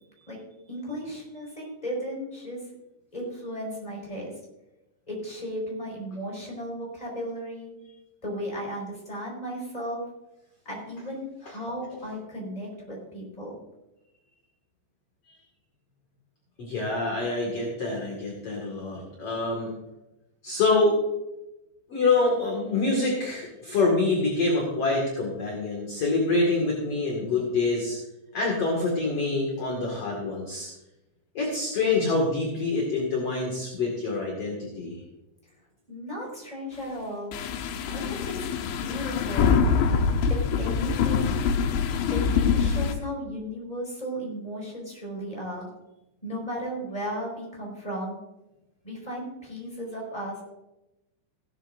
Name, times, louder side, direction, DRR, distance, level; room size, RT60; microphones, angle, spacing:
voice 1, 0.7-2.6 3.1-4.3 5.1-7.7 8.2-10.0 10.6-13.6 35.9-37.3 37.9-38.5 38.8-39.6 40.3-41.4 42.1-45.7 46.2-48.2 48.8-50.4, equal, 10° left, -2 dB, 4.6 m, -35 dB
voice 2, 16.6-19.8 20.4-21.0 21.9-28.0 28.3-30.7 31.3-35.0, left 3 dB, 45° left, -1 dB, 2.2 m, -26 dB
sound 1, 37.3-43.0, left 6 dB, 85° left, 3.2 m, -24 dB
16.0 x 13.0 x 2.6 m, 0.95 s
omnidirectional pair, 5.3 m